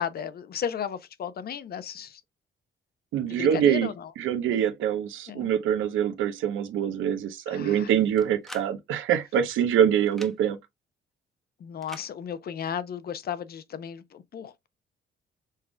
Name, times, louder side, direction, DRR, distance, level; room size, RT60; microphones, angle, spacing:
voice 1, 0.0-2.2 3.3-4.1 5.3-5.5 7.5-7.9 11.6-14.7, left 8 dB, 50° left, 0.6 m, -34 dB
voice 2, 3.1-3.9 4.2-10.6, right 9 dB, 85° right, 0.8 m, -24 dB
sound 1, 8.2-8.7 10.1-10.4 11.8-12.1, equal, ahead, 0.9 m, -43 dB
5.6 x 3.6 x 2.2 m
cardioid pair, 90°, 20 cm